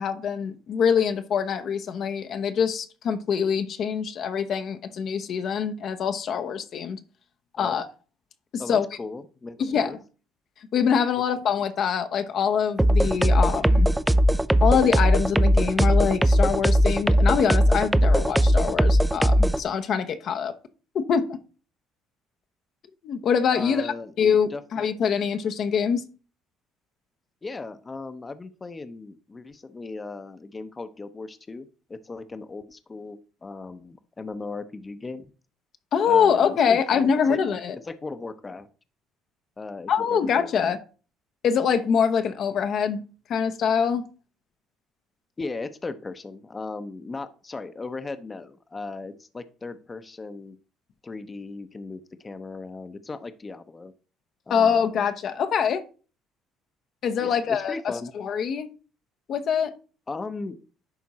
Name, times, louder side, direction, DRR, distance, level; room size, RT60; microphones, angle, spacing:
voice 1, 0.0-7.0 7.6-7.8 8.5-8.8 9.6-9.9 10.7-13.9 14.6-20.5 20.9-21.4 23.0-26.0 35.9-37.8 39.9-40.8 41.4-43.0 43.3-44.1 54.5-55.8 57.0-57.7 58.2-58.7 59.3-59.7, left 7 dB, 60° left, 0.8 m, -24 dB
voice 2, 8.6-10.0 23.5-24.1 24.5-24.6 27.4-35.3 36.1-37.4 37.8-38.7 39.6-40.8 45.4-50.6 51.0-53.9 54.5-54.8 57.2-58.1 60.1-60.6, left 3 dB, 25° left, 0.8 m, -37 dB
sound 1, 12.8-19.6, equal, 10° right, 0.5 m, -19 dB
10.5 x 3.7 x 4.2 m
supercardioid pair, 65°, 0 cm